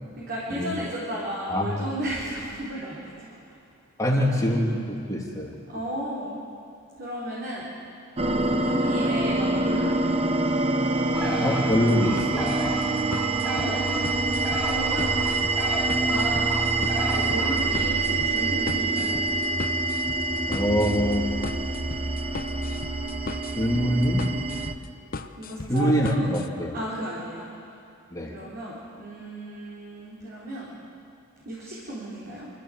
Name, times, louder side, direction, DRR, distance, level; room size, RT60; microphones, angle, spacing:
voice 1, 0.2-3.4 5.7-6.4 7.0-7.7 8.3-10.5 13.6-13.8 14.6-15.2 15.8-16.7 17.0-19.2 25.4-27.5 28.3-30.7 31.4-32.5, right 1 dB, 50° right, -7 dB, 4.0 m, -34 dB
voice 2, 1.5-1.8 4.0-5.5 11.4-12.6 20.5-21.3 23.5-24.2 25.7-26.7 28.1-28.4, equal, 15° left, -3 dB, 3.1 m, -24 dB
sound 1, 8.2-24.7, right 3 dB, 30° right, 0.9 m, -26 dB
Bird, 11.1-18.5, equal, 5° right, 2.0 m, -35 dB
sound 2, 11.7-26.5, left 3 dB, 45° left, 0.7 m, -38 dB
25.0 x 14.5 x 7.7 m, 2.6 s
head